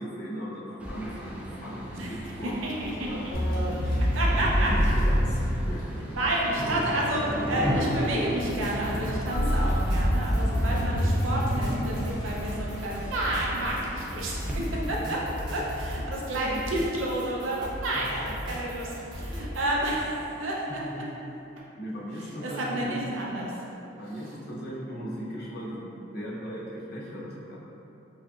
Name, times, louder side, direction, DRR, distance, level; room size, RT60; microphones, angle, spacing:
voice 1, 0.0-4.0 4.3-6.0 15.1-15.3 16.4-16.6 17.9-18.1 20.7-21.0 21.8-23.0 24.0-27.5, equal, 50° left, -7 dB, 0.8 m, -37 dB
sound 1, 0.8-14.6, equal, 5° right, 0.3 m, -35 dB
voice 2, 2.0-3.3 4.1-4.9 6.1-21.1 22.1-23.6 24.2-24.3, right 1 dB, 80° right, -4 dB, 0.6 m, -30 dB
sound 2, 3.3-6.3 9.3-12.8, equal, 80° left, 1.0 m, -26 dB
sound 3, 8.4-19.6, equal, 25° right, 0.9 m, -38 dB
4.8 x 2.7 x 2.4 m, 3.0 s
head